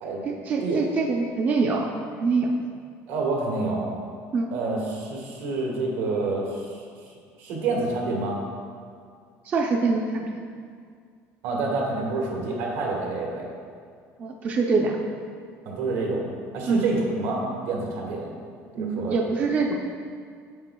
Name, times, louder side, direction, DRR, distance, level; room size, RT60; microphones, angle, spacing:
voice 1, 0.3-1.9 2.2-2.5 4.3-4.5 9.5-10.3 14.2-15.0 16.7-16.9 18.8-19.8, right 4 dB, 30° right, 1 dB, 0.4 m, -24 dB
voice 2, 3.1-3.9 4.5-6.7 7.4-8.4 11.4-13.5 15.6-18.3 18.7-19.5, right 3 dB, 85° right, -2 dB, 1.6 m, -28 dB
9.0 x 6.9 x 2.2 m, 2.1 s
cardioid pair, 170°, 6 cm